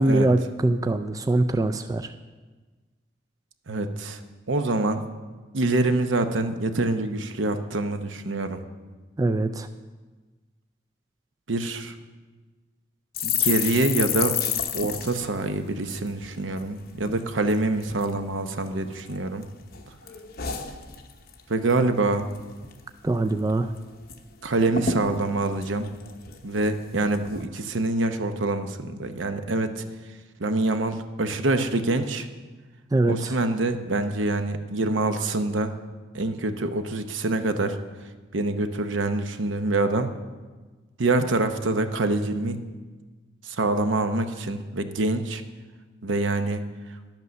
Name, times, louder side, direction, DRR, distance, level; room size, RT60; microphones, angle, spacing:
voice 1, 0.0-2.1 9.2-9.7 23.0-23.7 32.9-33.3, right 2 dB, 20° right, 9 dB, 0.3 m, -23 dB
voice 2, 3.7-4.2 4.5-5.1 5.5-8.6 11.5-11.9 13.2-14.4 14.7-19.4 21.5-22.3 24.4-25.9 26.4-29.8 30.4-32.3 33.1-35.7 36.1-37.8 38.3-40.1 41.0-42.6 43.4-45.4 46.0-46.6, right 2 dB, 85° right, 8 dB, 0.8 m, -25 dB
sound 1, 13.1-16.7 17.0-17.2 17.5-18.1 18.6-19.4 19.7-21.4 21.7-21.9 22.2-22.8 23.1-23.2 23.5-24.2 24.4-24.5 24.7-26.6 27.1-27.4, left 7 dB, 50° left, 0.9 m, -31 dB
10.5 x 8.2 x 6.4 m, 1.3 s
head